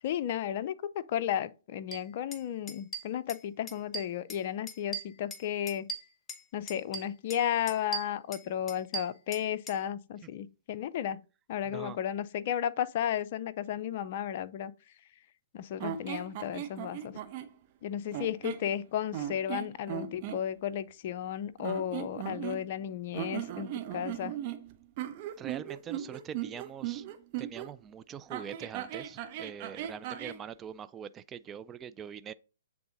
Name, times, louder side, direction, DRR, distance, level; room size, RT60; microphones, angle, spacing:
voice 1, 0.0-5.9 6.5-11.2 11.5-14.7 15.5-17.2 17.8-24.3, left 10 dB, 45° left, 0.5 m, -34 dB
sound 1, 1.9-2.0 2.3-2.4 2.7-3.4 3.7-4.4 4.7-6.4 6.7-7.4 7.7-9.8, right 2 dB, 15° left, 0.8 m, -39 dB
sound 2, 15.8-17.5 18.1-18.7 19.1-20.4 21.6-22.8 23.1-27.7 28.3-30.4, right 11 dB, 40° right, 1.0 m, -38 dB
voice 2, 25.4-27.1 27.4-32.3, right 8 dB, 20° right, 0.3 m, -43 dB
8.4 x 3.5 x 3.9 m
hypercardioid pair, 140°, 0 cm